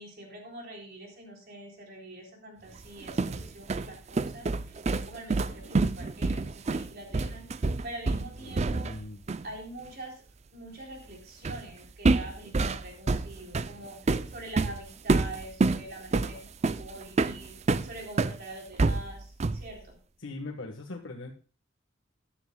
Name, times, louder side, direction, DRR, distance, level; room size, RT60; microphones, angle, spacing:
voice 1, 0.0-8.9 9.4-10.2 10.5-17.5 17.8-20.0, right 1 dB, 50° right, 0 dB, 3.7 m, -44 dB
sound 1, 2.8-9.0 9.3-9.5 11.4-11.7 12.0-18.4 18.8-19.7, right 3 dB, 35° right, 0.4 m, -28 dB
voice 2, 8.4-9.2 20.2-21.3, left 2 dB, 75° left, 1 dB, 1.4 m, -40 dB
14.5 x 11.0 x 2.3 m, 0.39 s
head